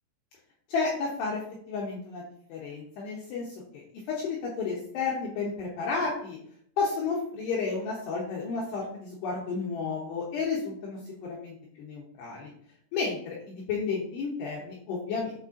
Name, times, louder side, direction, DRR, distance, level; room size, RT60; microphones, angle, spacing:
voice 1, 0.7-1.4 1.7-2.2 2.5-3.8 4.1-6.4 6.8-12.5 12.9-15.3, left 4 dB, 75° left, -4 dB, 2.6 m, -32 dB
8.8 x 4.9 x 2.8 m, 0.62 s
omnidirectional pair, 6.0 m